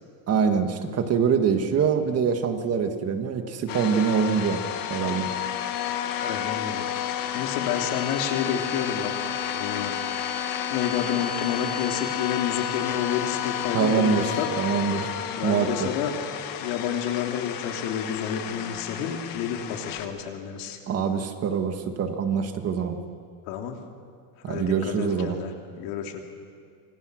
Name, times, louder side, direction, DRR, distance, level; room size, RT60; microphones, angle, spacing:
voice 1, 0.3-4.6 4.9-5.3 13.7-15.1 15.4-15.9 20.9-23.0 24.4-25.4, right 6 dB, 35° right, 6 dB, 1.8 m, -24 dB
sound 1, 3.7-20.1, left 9 dB, 45° left, 1.8 m, -31 dB
voice 2, 6.2-6.8 7.3-9.1 9.5-9.9 10.7-14.5 15.3-16.1 16.6-20.8 23.5-23.8 24.4-26.2, left 8 dB, 75° left, 3 dB, 3.3 m, -30 dB
26.5 x 25.0 x 6.4 m, 2.2 s
cardioid pair, 155°, 45 cm